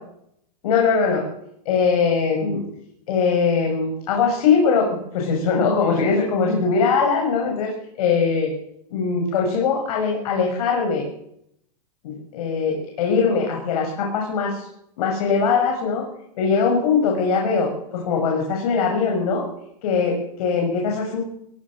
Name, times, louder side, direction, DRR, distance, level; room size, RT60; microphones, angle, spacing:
voice 1, 0.6-1.2 1.7-2.6 3.1-8.5 8.9-11.1 12.0-14.7 15.0-16.0 16.4-19.4 19.8-21.2, left 5 dB, 65° left, 1 dB, 7.4 m, -21 dB
27.0 x 17.0 x 6.7 m, 0.75 s
supercardioid pair, 150°, 21 cm